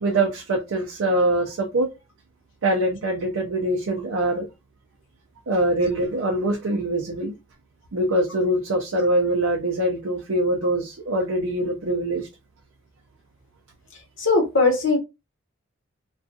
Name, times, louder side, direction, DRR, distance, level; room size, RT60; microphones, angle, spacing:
voice 1, 0.0-1.9 2.6-4.5 5.5-7.3 7.9-12.3, right 1 dB, 70° right, 0.5 m, -23 dB
voice 2, 14.2-15.0, left 3 dB, 60° left, 0.9 m, -19 dB
2.4 x 2.3 x 2.6 m
head